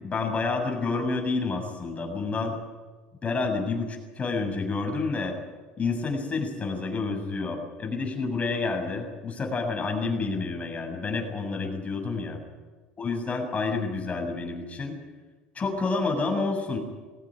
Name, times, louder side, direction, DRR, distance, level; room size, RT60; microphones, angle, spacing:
voice 1, 0.0-2.6 3.2-5.3 5.8-12.4 13.0-15.0 15.5-16.8, left 3 dB, 25° left, 2 dB, 7.3 m, -29 dB
21.5 x 17.5 x 9.3 m, 1.4 s
hypercardioid pair, 75°, 5 cm